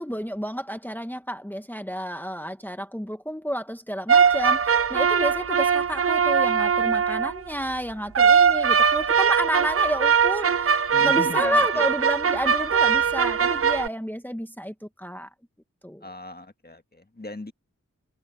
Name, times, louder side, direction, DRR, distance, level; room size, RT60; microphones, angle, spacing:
voice 1, 0.0-15.3 15.8-16.0, equal, 5° left, 1.5 m, -30 dB
sound 1, 4.1-7.4 8.2-13.9, right 6 dB, 45° right, 0.5 m, -21 dB
voice 2, 10.9-11.9 16.0-17.5, left 2 dB, 30° left, 1.7 m, -37 dB
wide cardioid pair, 50°, 31 cm